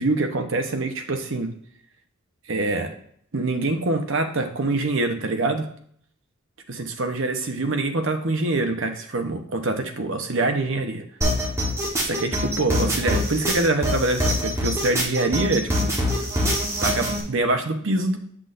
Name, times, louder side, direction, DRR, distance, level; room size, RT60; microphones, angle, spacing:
voice 1, 0.0-1.5 2.5-2.9 3.3-5.7 6.7-11.0 12.1-15.9 16.8-18.2, right 2 dB, 60° right, 7 dB, 0.8 m, -25 dB
sound 1, 11.2-17.2, equal, 15° right, 1.1 m, -24 dB
7.8 x 6.2 x 2.5 m, 0.63 s
head